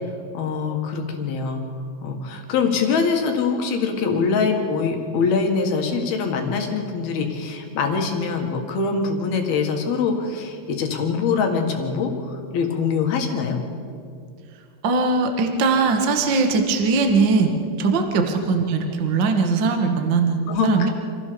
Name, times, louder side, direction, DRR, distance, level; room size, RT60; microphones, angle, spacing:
voice 1, 0.3-1.6 2.0-13.6 18.2-18.3 20.5-20.9, left 5 dB, 65° left, 3 dB, 3.5 m, -23 dB
voice 2, 14.8-17.5 17.8-20.9, right 4 dB, 55° right, 4 dB, 1.2 m, -20 dB
26.5 x 15.0 x 7.0 m, 2.3 s
omnidirectional pair, 5.2 m